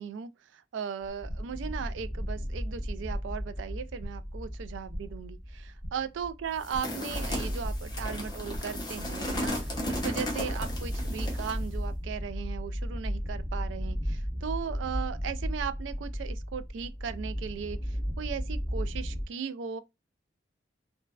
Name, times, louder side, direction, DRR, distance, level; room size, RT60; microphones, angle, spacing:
voice 1, 0.0-19.8, right 7 dB, 75° right, 0.3 m, -37 dB
sound 1, 1.0-19.2, equal, 5° right, 1.1 m, -35 dB
sound 2, 1.1-1.6 1.9-2.5 2.8-3.4 3.7-4.3 4.6-5.3 5.6-6.2 6.4-8.0 8.2-8.9 9.1-9.9, equal, 55° right, 0.9 m, -44 dB
sound 3, 6.6-11.7, left 1 dB, 20° left, 0.7 m, -35 dB
3.1 x 2.1 x 2.3 m
head